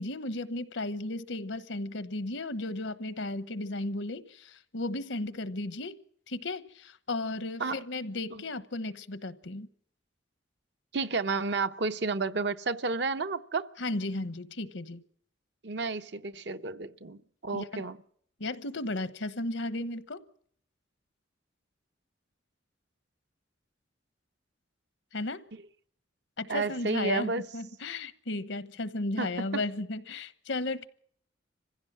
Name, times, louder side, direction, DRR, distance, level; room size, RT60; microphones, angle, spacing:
voice 1, 0.0-5.9 6.3-9.7 13.8-15.0 17.5-17.8 18.4-20.2 25.1-25.4 26.4-30.9, left 2 dB, 75° left, 1.0 m, -35 dB
voice 2, 10.9-13.7 15.6-18.0 26.5-27.5 29.2-29.6, right 4 dB, 60° right, 0.9 m, -31 dB
24.5 x 16.0 x 7.4 m
head